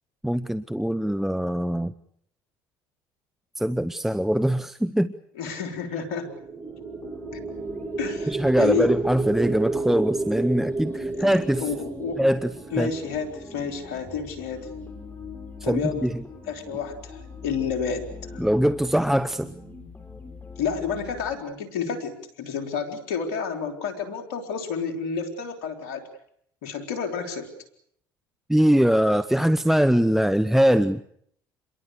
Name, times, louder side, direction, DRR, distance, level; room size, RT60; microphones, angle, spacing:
voice 1, 0.2-1.9 3.6-5.1 8.3-11.7 12.2-12.5 12.8-12.9 15.7-16.2 18.4-19.5 28.5-31.0, equal, 5° right, 12 dB, 1.0 m, -22 dB
voice 2, 5.4-6.3 8.0-8.9 11.2-12.2 12.7-14.7 15.6-16.0 16.5-18.1 18.3-18.4 20.6-26.0 26.6-27.5, left 6 dB, 85° left, 5 dB, 4.4 m, -30 dB
sound 1, 6.1-14.2, right 3 dB, 30° right, 1.9 m, -31 dB
sound 2, 6.6-21.3, left 3 dB, 20° left, 7.4 m, -43 dB
28.5 x 22.5 x 6.8 m, 0.68 s
hypercardioid pair, 70°, 10 cm